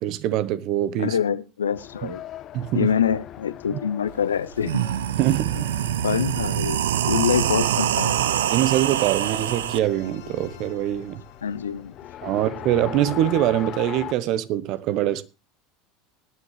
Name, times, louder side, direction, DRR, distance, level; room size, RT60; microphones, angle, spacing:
voice 1, 0.0-1.2 2.0-2.1 2.5-2.9 3.7-3.8 5.2-5.7 8.5-11.2 12.2-15.2, right 13 dB, 55° right, 1.0 m, -24 dB
voice 2, 1.0-2.2 2.7-4.9 6.0-8.2 11.4-11.9, left 8 dB, 85° left, 0.6 m, -25 dB
Race car auto racing, 1.7-14.1, left 12 dB, 45° left, 0.8 m, -40 dB
sound 1, 4.1-4.2 4.5-9.8, right 11 dB, 75° right, 0.6 m, -24 dB
sound 2, 7.2-13.1, left 9 dB, 65° left, 3.0 m, -46 dB
19.5 x 9.9 x 3.3 m
hypercardioid pair, 80°, 0 cm